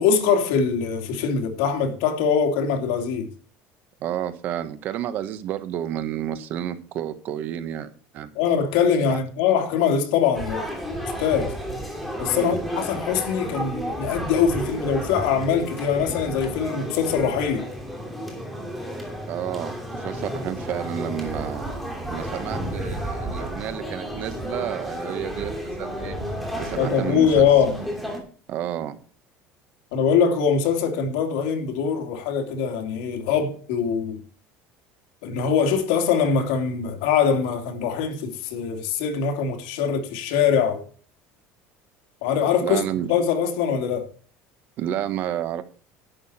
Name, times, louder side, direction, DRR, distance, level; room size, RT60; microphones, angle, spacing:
voice 1, 0.0-3.3 8.3-10.7 11.2-11.5 12.2-17.7 26.7-27.8 29.9-34.2 35.2-40.8 42.2-42.8 43.1-44.0, left 7 dB, 85° left, 2.9 m, -22 dB
voice 2, 4.0-8.3 9.1-9.2 12.3-12.6 19.3-21.7 22.1-26.2 26.6-27.5 28.5-29.0 42.6-43.1 44.8-45.6, right 11 dB, 40° right, 1.4 m, -30 dB
sound 1, 10.3-28.2, equal, ahead, 2.7 m, -32 dB
11.0 x 9.5 x 4.3 m
cardioid pair, 175°, 5 cm